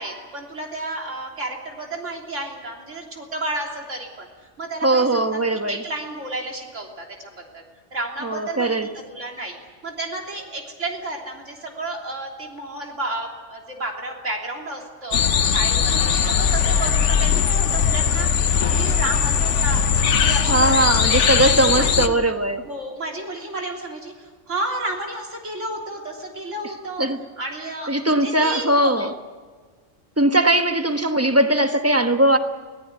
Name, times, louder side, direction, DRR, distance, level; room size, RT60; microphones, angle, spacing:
voice 1, 0.0-4.3 4.6-5.4 5.7-7.6 7.9-8.8 9.1-9.6 9.8-21.1 21.5-22.2 22.6-27.0 27.4-28.9, right 2 dB, 90° right, 0 dB, 3.7 m, -32 dB
voice 2, 4.8-5.8 8.2-8.9 20.5-22.7 26.6-27.2 27.9-29.1 30.2-32.4, right 1 dB, 15° right, 7 dB, 1.1 m, -20 dB
sound 1, 15.1-22.1, left 7 dB, 80° left, 1.2 m, -19 dB
24.0 x 17.0 x 9.5 m, 1.4 s
omnidirectional pair, 1.2 m